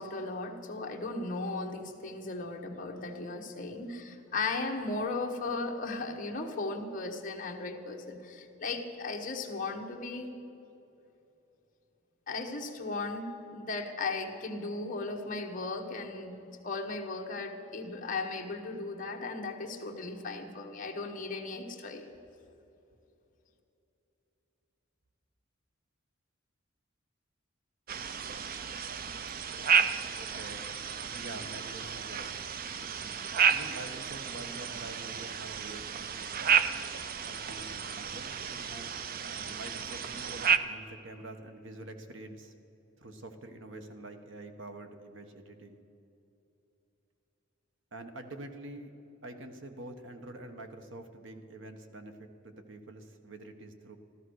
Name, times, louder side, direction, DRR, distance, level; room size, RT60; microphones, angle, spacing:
voice 1, 0.0-10.3 12.3-22.1, left 3 dB, 40° left, 1 dB, 1.3 m, -36 dB
sound 1, 27.9-40.6, right 7 dB, 45° right, 0.5 m, -32 dB
voice 2, 30.2-30.7 31.1-32.3 33.5-35.9 37.2-38.9 39.2-42.5 43.0-45.8 47.9-48.9 49.2-52.2 52.4-54.0, right 2 dB, 65° right, 6 dB, 1.2 m, -46 dB
14.0 x 13.5 x 6.4 m, 2.9 s
head